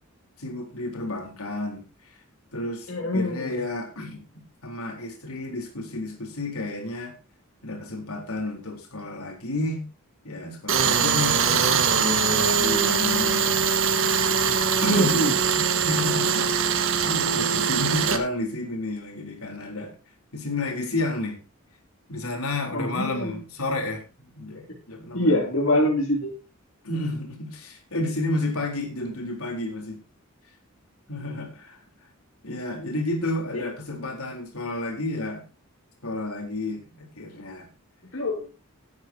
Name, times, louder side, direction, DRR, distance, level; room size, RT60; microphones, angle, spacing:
voice 1, 0.4-2.1 2.5-4.2 4.6-7.1 7.6-9.8 10.2-13.6 14.8-15.2 15.6-19.9 20.3-21.4 22.1-24.1 24.3-25.4 26.8-30.0 31.1-31.8 32.4-35.4 36.0-37.7, left 2 dB, 80° left, 2 dB, 4.1 m, -31 dB
voice 2, 2.9-3.6 14.8-15.3 22.7-23.4 25.1-26.3 33.5-33.7 38.1-38.5, left 1 dB, 60° left, -2 dB, 3.0 m, -24 dB
Tools, 10.7-18.2, right 6 dB, 60° right, 1.6 m, -22 dB
18.5 x 9.6 x 2.9 m, 0.29 s
head